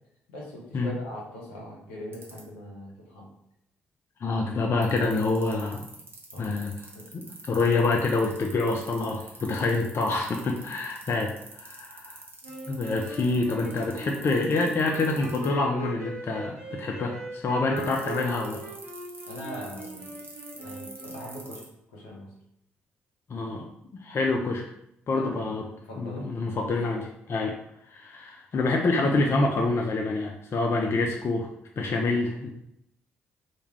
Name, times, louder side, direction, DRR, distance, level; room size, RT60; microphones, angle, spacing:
voice 1, 0.3-3.3 6.3-6.5 6.9-7.1 19.3-20.0 20.6-21.6 21.9-22.3 25.1-26.3, equal, 80° left, -3 dB, 0.7 m, -41 dB
sound 1, 2.1-2.4 4.8-15.5 17.8-21.7, right 3 dB, 35° right, 0.8 m, -45 dB
voice 2, 4.2-5.9 6.4-6.8 7.1-12.2 12.7-18.6 23.3-24.7 25.1-25.6 26.0-27.6 27.9-31.5 31.8-32.5, left 3 dB, 40° left, 1 dB, 0.4 m, -27 dB
sound 2, 12.4-21.6, right 2 dB, 90° right, 0.8 m, -40 dB
2.2 x 2.2 x 3.1 m, 0.78 s
figure-of-eight pair, 40°, 6 cm